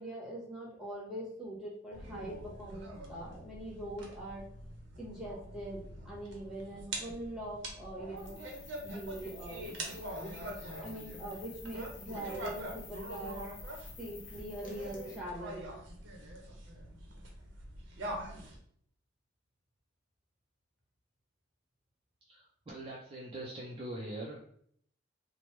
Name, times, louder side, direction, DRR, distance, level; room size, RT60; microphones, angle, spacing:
voice 1, 0.0-4.4 5.0-8.4 8.8-10.0 10.5-13.4 14.0-15.7, right 1 dB, 5° right, -5 dB, 0.8 m, -43 dB
sound 1, 1.9-18.6, right 1 dB, 65° right, 0.6 m, -44 dB
sound 2, 8.2-15.2, left 5 dB, 45° left, 0.6 m, -52 dB
voice 2, 22.2-24.4, right 1 dB, 30° right, -3 dB, 0.3 m, -43 dB
3.0 x 2.0 x 3.1 m, 0.64 s
head